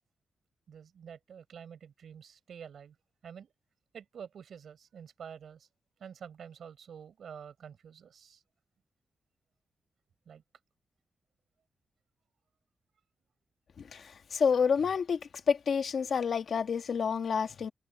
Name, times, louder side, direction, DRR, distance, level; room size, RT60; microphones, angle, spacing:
voice 1, 0.7-3.0 3.2-3.5 3.9-5.7 6.0-8.4 10.2-10.4, right 7 dB, 70° right, 4.9 m, -48 dB
voice 2, 13.8-15.2 15.5-17.7, left 6 dB, 60° left, 1.8 m, -29 dB
wide cardioid pair, 110°, 0 cm